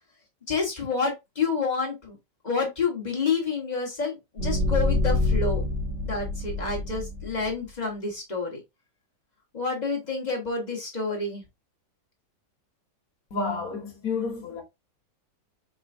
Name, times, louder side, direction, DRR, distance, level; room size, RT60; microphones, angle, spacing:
voice 1, 0.5-2.2 2.4-4.2 4.4-5.6 6.0-8.6 9.5-11.4, left 4 dB, 25° left, 1.4 m, -28 dB
sound 1, 4.4-7.5, left 2 dB, 45° right, 1.2 m, -26 dB
voice 2, 13.3-14.6, left 4 dB, 55° left, 1.7 m, -30 dB
4.8 x 3.7 x 2.6 m
omnidirectional pair, 1.9 m